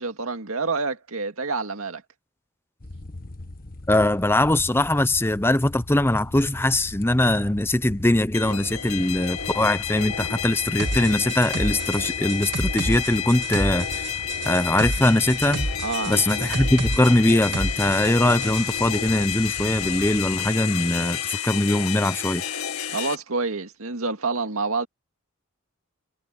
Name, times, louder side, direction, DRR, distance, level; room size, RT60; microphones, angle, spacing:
voice 1, 0.0-2.0 15.8-16.1 22.9-24.9, right 3 dB, 75° right, 2.1 m, -27 dB
sound 1, 2.8-20.5, left 1 dB, 40° left, 1.4 m, -41 dB
voice 2, 3.9-14.1 14.5-15.7 16.1-22.4, left 1 dB, 10° left, 0.7 m, -21 dB
sound 2, 8.3-23.1, left 9 dB, 85° left, 2.0 m, -30 dB
sound 3, 10.8-18.7, right 2 dB, 55° right, 2.3 m, -31 dB
head